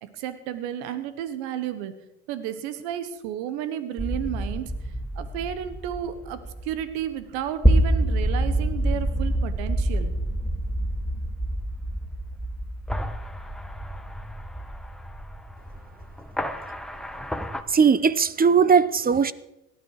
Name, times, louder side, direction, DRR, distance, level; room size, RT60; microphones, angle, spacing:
voice 1, 0.0-1.9 2.3-4.7 5.1-10.1, right 10 dB, 85° right, 11 dB, 1.3 m, -32 dB
sound 1, 4.0-17.6, right 1 dB, ahead, 1.5 m, -27 dB
voice 2, 17.7-19.3, right 6 dB, 25° right, 18 dB, 0.9 m, -19 dB
18.0 x 12.0 x 4.9 m, 0.94 s
supercardioid pair, 75°, 32 cm